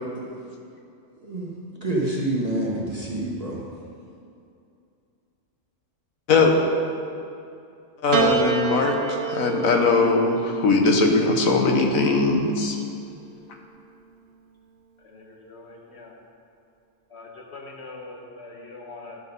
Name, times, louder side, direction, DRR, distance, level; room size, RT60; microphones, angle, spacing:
voice 1, 1.8-3.6, right 1 dB, 30° right, -4 dB, 1.2 m, -27 dB
voice 2, 8.0-12.7, left 3 dB, 80° left, 3 dB, 1.5 m, -20 dB
Piano, 8.1-12.6 13.6-14.4, right 5 dB, 50° right, 0.8 m, -29 dB
voice 3, 15.0-16.1 17.1-19.2, left 3 dB, 55° left, 0 dB, 1.6 m, -42 dB
11.0 x 6.6 x 5.3 m, 2.5 s
omnidirectional pair, 1.4 m